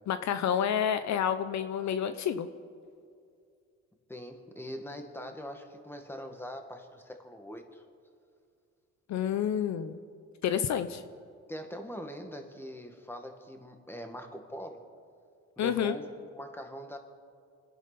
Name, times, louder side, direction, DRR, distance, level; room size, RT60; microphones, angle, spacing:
voice 1, 0.1-2.5 9.1-10.0 10.4-11.0 15.6-16.0, left 9 dB, 65° left, 10 dB, 0.8 m, -29 dB
voice 2, 4.1-7.8 11.5-14.9 15.6-16.1 16.3-17.0, equal, 5° left, 5 dB, 1.9 m, -42 dB
28.0 x 10.5 x 4.2 m, 2.4 s
cardioid pair, 90°, 30 cm